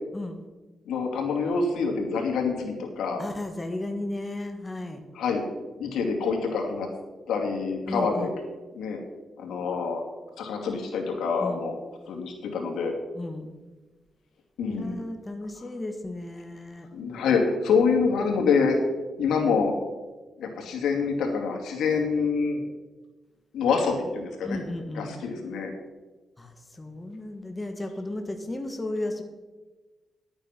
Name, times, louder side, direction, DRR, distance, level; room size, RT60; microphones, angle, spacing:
voice 1, 0.9-3.2 5.1-5.4 5.8-6.9 7.3-8.3 8.7-9.0 9.4-10.0 10.4-11.8 12.1-12.9 14.6-15.0 16.9-18.8 19.2-19.7 20.4-22.7 23.5-24.6 24.9-25.7, left 5 dB, 90° left, 2 dB, 2.5 m, -26 dB
voice 2, 3.2-5.0 7.9-8.3 11.4-11.7 13.1-13.5 14.7-16.9 24.4-25.1 26.4-29.2, left 1 dB, 20° left, 5 dB, 1.5 m, -34 dB
11.5 x 8.8 x 5.9 m, 1.2 s
cardioid pair, 90°, 0 cm